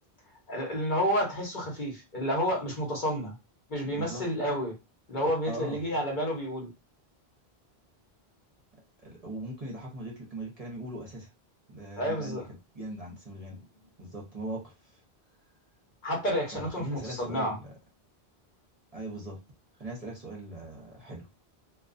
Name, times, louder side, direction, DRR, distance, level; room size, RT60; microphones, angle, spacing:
voice 1, 0.5-3.3 3.7-4.7 5.1-6.7 12.0-12.4 16.0-17.6, equal, 50° left, -1 dB, 0.9 m, -30 dB
voice 2, 3.8-4.3 5.5-5.8 9.0-11.3 11.7-12.4 12.7-13.6 14.0-15.0 16.5-17.7 18.9-19.4 19.8-21.3, right 1 dB, 40° right, -3 dB, 0.8 m, -40 dB
2.3 x 2.3 x 2.5 m, 0.25 s
omnidirectional pair, 1.1 m